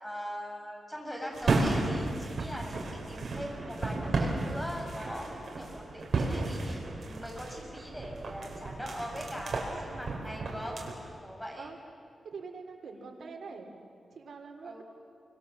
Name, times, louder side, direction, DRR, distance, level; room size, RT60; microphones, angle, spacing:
voice 1, 0.0-10.8 11.2-11.7 12.9-13.0 14.6-14.8, equal, ahead, -1 dB, 5.8 m, -41 dB
sound 1, 1.3-10.9, right 3 dB, 60° right, 4.6 m, -33 dB
voice 2, 12.2-13.7 14.1-14.8, right 4 dB, 85° right, 3 dB, 3.2 m, -44 dB
28.0 x 25.0 x 7.3 m, 2.5 s
wide cardioid pair, 145°, 0 cm